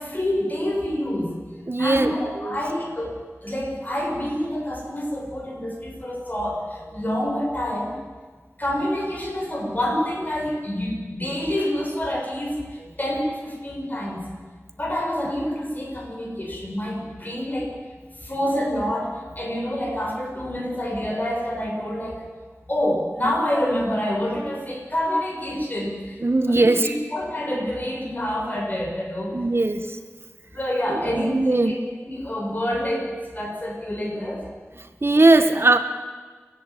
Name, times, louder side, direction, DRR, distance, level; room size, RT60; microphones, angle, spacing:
voice 1, 0.0-8.0 8.6-14.3 14.8-17.8 18.2-22.2 22.7-26.2 26.5-29.3 30.5-34.4, left 1 dB, 35° left, -2 dB, 6.8 m, -27 dB
voice 2, 1.7-2.6 26.2-26.9 29.3-30.0 30.9-31.8 35.0-35.8, right 2 dB, 55° right, 9 dB, 1.6 m, -19 dB
30.0 x 11.0 x 8.7 m, 1.4 s
wide cardioid pair, 50°, 5 cm